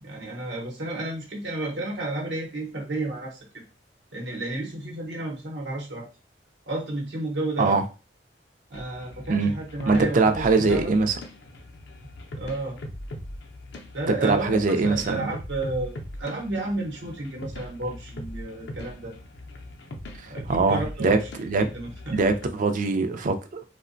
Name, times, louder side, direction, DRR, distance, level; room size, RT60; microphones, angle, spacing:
voice 1, 0.0-3.6 4.1-6.1 6.7-7.8 8.7-10.9 12.4-12.8 13.9-19.1 20.3-21.3 21.6-22.2, right 2 dB, 80° right, 0.7 m, -32 dB
sound 1, 8.7-22.5, left 1 dB, 75° left, 0.5 m, -40 dB
voice 2, 9.9-11.1 14.2-15.3 20.5-21.7 22.1-23.6, right 3 dB, 50° right, 0.3 m, -22 dB
2.8 x 2.1 x 2.5 m
head